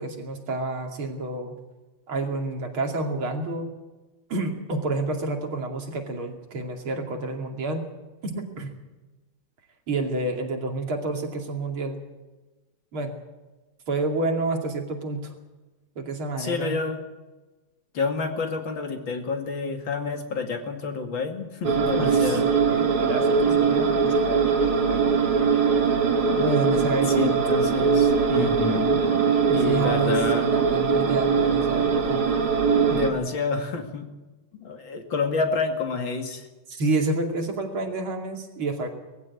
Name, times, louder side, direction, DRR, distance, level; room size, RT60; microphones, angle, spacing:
voice 1, 0.0-1.6 2.1-3.7 4.3-7.9 8.2-8.7 9.9-12.0 12.9-13.2 13.9-15.3 16.0-16.8 22.0-22.4 22.7-24.4 26.4-27.4 29.5-30.2 30.5-32.2 32.9-33.1 36.7-38.9, right 2 dB, 80° right, 3 dB, 3.5 m, -29 dB
voice 2, 16.4-17.0 17.9-22.5 27.1-29.0 29.5-30.5 32.9-34.1 34.6-36.5, left 4 dB, 65° left, 5 dB, 2.9 m, -28 dB
sound 1, 21.6-33.1, right 5 dB, 50° right, 2.5 m, -21 dB
20.5 x 15.0 x 8.5 m, 1.2 s
omnidirectional pair, 2.3 m